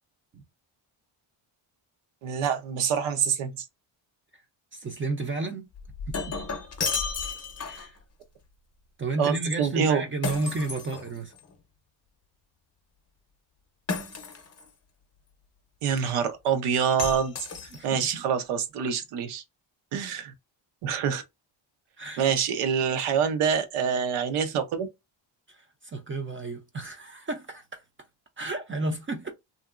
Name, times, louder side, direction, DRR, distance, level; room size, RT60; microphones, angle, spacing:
voice 1, 2.2-3.7 9.2-10.0 15.8-17.3 17.6-19.4 19.9-20.3 20.8-21.2 22.2-24.9, right 7 dB, 90° right, 0.8 m, -26 dB
voice 2, 4.7-5.7 6.1-6.4 7.6-8.0 9.0-11.3 17.7-18.2 22.0-22.3 25.5-27.8 28.4-29.3, right 2 dB, 25° right, 0.4 m, -32 dB
Shatter, 5.7-8.0 10.2-11.5 13.9-14.7 17.0-18.1, left 4 dB, 30° left, 0.7 m, -33 dB
2.8 x 2.6 x 2.4 m
cardioid pair, 100°, 49 cm